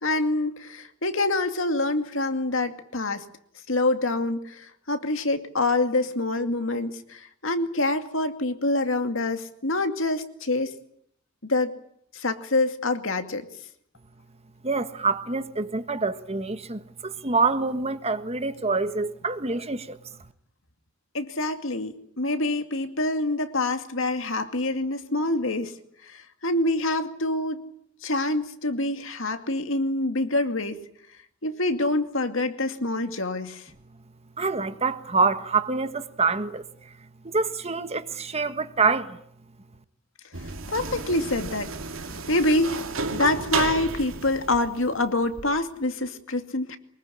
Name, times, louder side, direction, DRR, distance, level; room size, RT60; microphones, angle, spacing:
voice 1, 0.0-3.2 3.7-10.7 11.4-11.8 12.1-13.5 21.1-25.7 26.0-27.6 28.0-30.8 31.4-33.7 40.7-41.7 42.3-42.8 43.1-46.8, left 2 dB, 75° left, 2.4 m, -26 dB
voice 2, 14.6-20.0 34.4-36.6 37.2-39.2, right 4 dB, 30° right, 1.5 m, -26 dB
sound 1, 40.3-45.5, right 4 dB, 85° right, 2.7 m, -33 dB
24.0 x 21.5 x 10.0 m
head